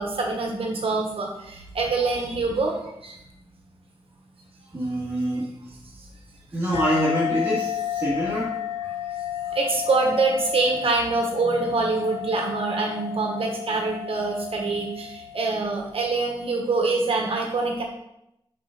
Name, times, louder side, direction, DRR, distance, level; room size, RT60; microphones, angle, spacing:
voice 1, 0.0-2.7 3.0-3.1 9.5-17.8, right 3 dB, 70° right, 1 dB, 1.3 m, -25 dB
voice 2, 4.7-5.8 6.5-8.9, equal, 25° right, -9 dB, 2.0 m, -26 dB
sound 1, 6.7-15.8, left 11 dB, 85° left, 0.5 m, -32 dB
5.5 x 5.0 x 6.5 m, 0.81 s
wide cardioid pair, 155°, 10 cm